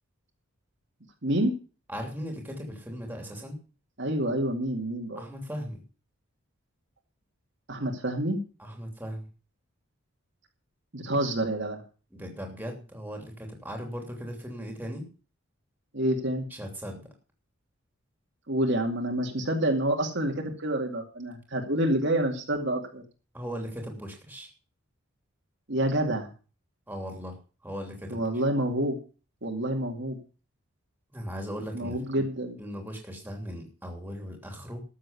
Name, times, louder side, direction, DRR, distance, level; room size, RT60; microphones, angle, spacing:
voice 1, 1.9-3.6 5.1-5.8 8.6-9.3 12.1-15.1 16.5-17.0 23.3-24.5 26.9-27.4 27.6-28.2 31.1-32.2 32.6-34.8, equal, 10° right, 2 dB, 3.1 m, -38 dB
voice 2, 4.0-5.2 7.7-8.4 10.9-11.8 15.9-16.5 18.5-23.0 25.7-26.3 28.1-29.0 29.4-30.2 31.7-32.6, right 1 dB, 55° right, 2 dB, 2.3 m, -28 dB
13.0 x 7.5 x 6.9 m, 0.36 s
head